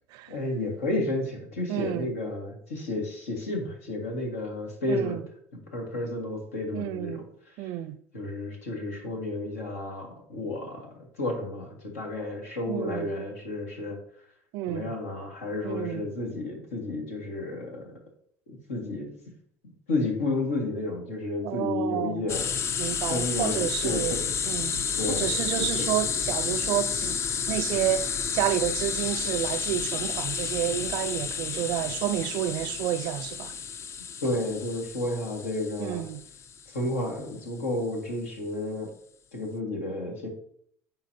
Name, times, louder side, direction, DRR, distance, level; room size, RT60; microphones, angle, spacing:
voice 1, 0.3-5.2 5.5-7.7 8.1-14.0 14.7-17.9 18.5-19.1 19.9-22.5 23.1-24.3 25.0-25.3 25.6-25.9 34.2-36.0 36.7-38.9 39.3-40.3, left 2 dB, 90° left, 1.7 m, -32 dB
voice 2, 1.7-2.1 4.9-5.2 6.7-7.2 7.6-8.0 12.7-13.1 14.5-14.9 15.6-16.1 21.4-22.2 22.8-24.2 24.5-27.2 27.5-33.6 35.8-36.2, right 13 dB, 65° right, 0.4 m, -30 dB
sound 1, 22.3-36.8, left 7 dB, 40° left, 0.4 m, -31 dB
9.5 x 3.9 x 2.8 m
hypercardioid pair, 75°, 8 cm